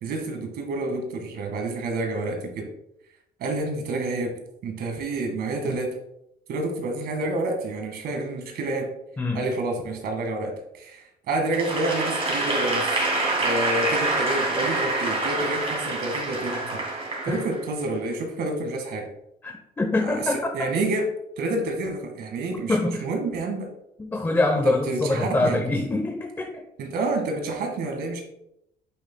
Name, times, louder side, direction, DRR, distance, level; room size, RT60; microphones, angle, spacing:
voice 1, 0.0-2.7 3.4-4.4 4.6-5.9 6.5-8.9 9.3-13.1 13.4-16.8 17.2-19.1 20.0-21.1 21.4-23.7 24.6-25.6 26.8-28.2, right 2 dB, 70° right, 4 dB, 1.9 m, -28 dB
voice 2, 9.2-9.5 17.3-17.4 19.4-20.5 22.7-23.0 24.0-26.6, left 2 dB, 15° left, 3 dB, 0.8 m, -24 dB
Applause / Crowd, 11.5-17.8, right 2 dB, 35° right, 2.8 m, -26 dB
8.4 x 7.0 x 2.3 m, 0.79 s
cardioid pair, 110°, 17 cm